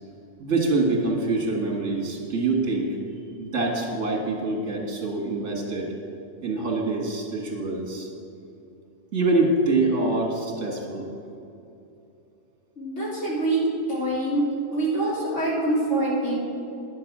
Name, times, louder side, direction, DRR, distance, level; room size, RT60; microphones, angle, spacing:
voice 1, 0.4-3.0 3.4-5.9 6.4-8.1 9.1-11.2, right 2 dB, 70° right, -1 dB, 2.1 m, -25 dB
voice 2, 12.8-13.6 13.9-14.4 14.7-16.4, right 2 dB, 80° left, -6 dB, 3.2 m, -25 dB
10.0 x 7.0 x 7.3 m, 2.7 s
omnidirectional pair, 1.3 m